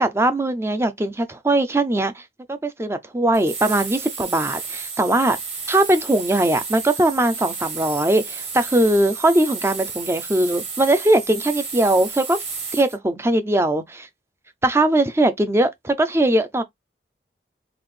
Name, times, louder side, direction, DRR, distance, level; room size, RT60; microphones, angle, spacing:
voice 1, 0.0-2.2 2.5-5.4 5.7-12.4 12.7-14.1 14.6-16.6, right 1 dB, 15° right, 0.5 m, -20 dB
sound 1, 3.3-12.9, right 5 dB, 35° right, 1.9 m, -32 dB
3.9 x 2.5 x 3.2 m
head